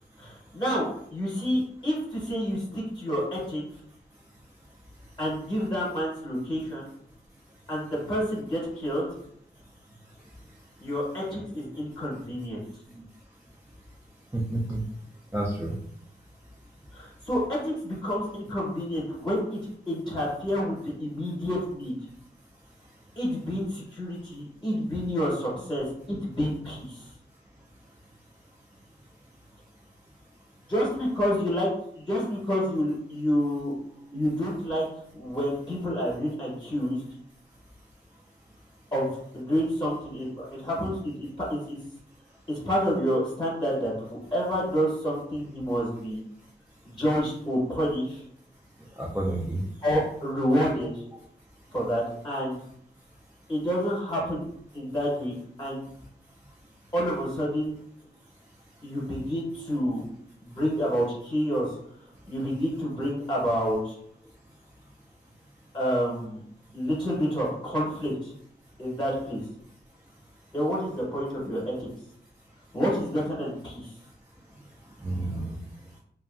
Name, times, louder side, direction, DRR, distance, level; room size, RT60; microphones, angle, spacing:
voice 1, 0.2-3.6 5.2-6.9 7.7-9.1 10.8-12.6 16.9-19.6 19.9-21.9 23.2-27.1 30.7-31.7 31.9-33.7 34.1-34.9 35.1-37.0 38.9-39.1 39.3-41.8 42.5-46.2 46.8-48.2 49.8-51.0 51.7-52.6 53.5-54.4 54.7-55.9 56.9-57.7 58.8-60.0 60.4-61.7 62.3-64.0 65.7-66.4 66.7-68.3 68.8-69.4 70.5-71.9 72.7-73.9, equal, 25° left, -5 dB, 0.9 m, -28 dB
voice 2, 14.3-14.8 15.3-15.7 49.0-49.6 75.0-75.5, right 1 dB, 10° right, -5 dB, 0.3 m, -29 dB
2.8 x 2.4 x 2.4 m, 0.69 s
wide cardioid pair, 135°, 18 cm